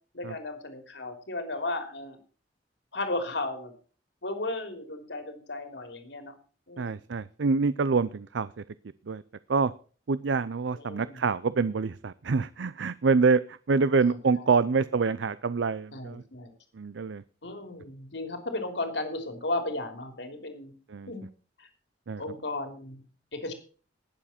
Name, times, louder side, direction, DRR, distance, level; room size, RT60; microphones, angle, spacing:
voice 1, 0.1-2.2 2.9-3.7 4.2-6.3 6.7-7.0 10.7-11.3 14.1-14.6 15.9-16.5 17.4-20.7 21.1-21.2 21.6-21.7 22.2-23.0 23.3-23.5, left 2 dB, 70° left, 6 dB, 3.2 m, -35 dB
voice 2, 6.8-8.5 9.1-9.2 9.5-9.7 10.1-16.2 16.8-17.2 20.9-21.1 22.1-22.2, right 4 dB, 85° right, 16 dB, 0.5 m, -26 dB
19.5 x 7.4 x 4.3 m, 0.39 s
head